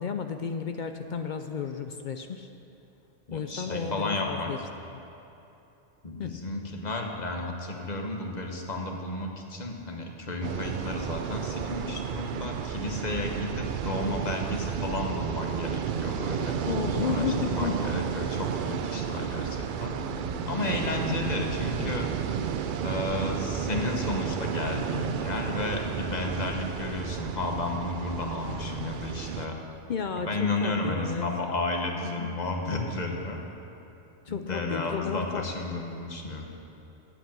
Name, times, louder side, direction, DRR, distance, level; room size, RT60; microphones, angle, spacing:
voice 1, 0.0-2.5 3.3-4.6 6.2-6.3 16.7-17.8 20.9-21.2 29.9-31.3 32.0-32.3 34.3-35.5, left 6 dB, 60° left, 7 dB, 0.5 m, -33 dB
voice 2, 3.3-4.5 6.0-22.1 22.8-29.6 30.2-33.4 34.3-36.5, left 2 dB, 35° left, 2 dB, 1.2 m, -32 dB
sound 1, 10.4-29.5, right 8 dB, 60° right, 0.5 m, -32 dB
sound 2, 19.3-24.4, left 7 dB, 75° left, 0.9 m, -43 dB
8.8 x 8.0 x 8.7 m, 3.0 s
omnidirectional pair, 1.2 m